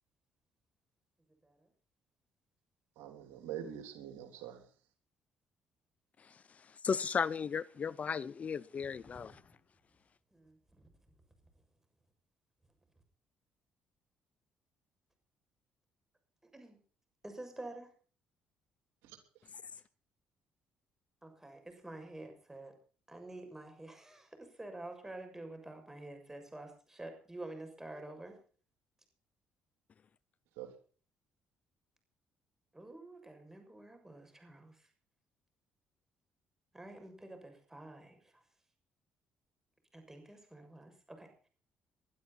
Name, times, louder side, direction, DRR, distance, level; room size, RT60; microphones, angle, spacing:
voice 1, 2.9-4.7 19.0-19.5 30.5-30.7, right 10 dB, 90° right, 3.4 m, -45 dB
voice 2, 6.2-9.4, left 6 dB, 40° left, 0.6 m, -36 dB
voice 3, 10.3-10.9 16.4-16.8 17.2-17.9 21.2-22.7 23.1-28.4 32.7-34.9 36.7-38.4 39.9-41.5, right 2 dB, 10° right, 6.9 m, -49 dB
21.5 x 12.0 x 4.3 m
supercardioid pair, 80°, 4 cm